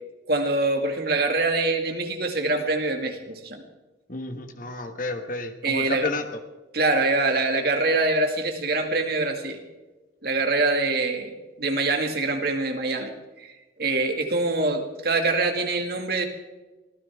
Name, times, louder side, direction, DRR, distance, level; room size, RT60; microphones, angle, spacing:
voice 1, 0.3-3.6 5.6-6.1 6.7-9.6 10.2-11.3 11.6-13.5 13.8-16.2, right 2 dB, 55° right, 3 dB, 2.2 m, -24 dB
voice 2, 4.1-6.4, left 2 dB, 45° left, 6 dB, 1.4 m, -31 dB
24.5 x 16.0 x 3.7 m, 1.2 s
head